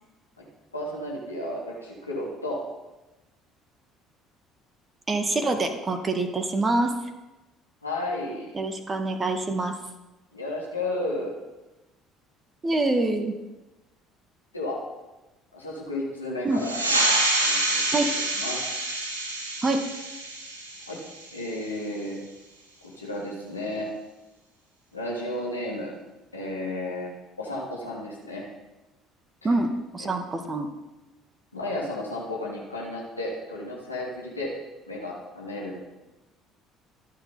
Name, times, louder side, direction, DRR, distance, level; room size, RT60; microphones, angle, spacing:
voice 1, 0.7-2.6 7.8-8.5 10.3-11.3 14.5-14.8 15.5-16.8 17.4-18.0 18.3-18.6 20.9-21.0 21.3-22.2 22.8-23.9 24.9-25.9 26.3-27.1 27.4-28.5 29.4-29.5 30.0-30.1 31.5-34.5 34.9-35.8, left 1 dB, 85° left, -4 dB, 3.2 m, -33 dB
voice 2, 5.1-6.9 8.5-9.8 12.6-13.3 16.4-16.6 17.9-18.1 19.6-19.9 29.4-30.7, right 2 dB, 25° right, 7 dB, 2.0 m, -25 dB
sound 1, 16.5-21.7, right 2 dB, 80° right, 3.0 m, -27 dB
26.5 x 9.5 x 4.2 m, 1.1 s
figure-of-eight pair, 55°, 0 cm